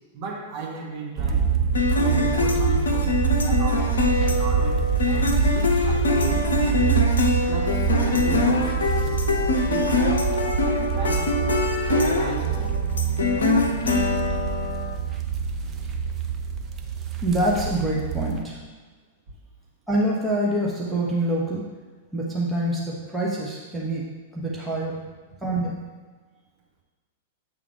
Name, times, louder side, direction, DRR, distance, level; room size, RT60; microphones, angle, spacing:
voice 1, 0.1-1.6 2.0-3.2 3.4-7.0 7.5-9.2 9.7-11.5 11.9-12.8, right 3 dB, 40° right, -3 dB, 1.7 m, -35 dB
sound 1, 1.2-18.4, right 6 dB, 25° right, 0.6 m, -25 dB
sound 2, 1.7-14.9, left 3 dB, 70° left, 0.7 m, -24 dB
voice 2, 17.2-18.6 19.9-21.6 22.1-24.0 24.3-24.9 25.4-25.7, right 1 dB, 5° right, -6 dB, 1.1 m, -25 dB
8.1 x 3.7 x 4.8 m, 1.4 s
figure-of-eight pair, 100°, 0 cm